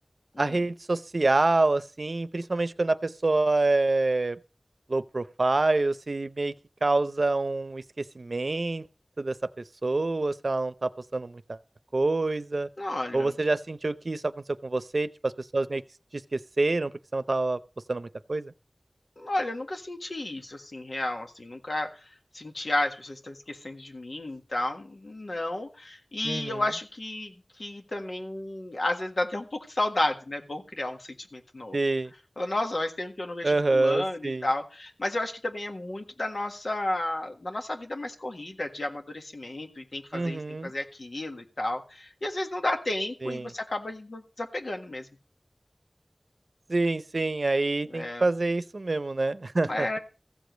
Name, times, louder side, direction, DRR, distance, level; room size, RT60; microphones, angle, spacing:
voice 1, 0.4-4.4 4.9-6.5 6.8-8.8 9.2-11.6 11.9-12.7 13.1-15.8 16.1-17.6 17.9-18.5 26.2-26.6 31.7-32.1 33.4-34.5 40.1-40.7 43.2-43.5 46.7-50.0, right 2 dB, 85° right, 0.6 m, -27 dB
voice 2, 12.8-13.3 19.2-22.1 22.3-31.8 32.4-45.1 47.9-48.2 49.7-50.0, left 1 dB, 90° left, 1.6 m, -32 dB
15.0 x 5.1 x 7.9 m
wide cardioid pair, 45°, 0 cm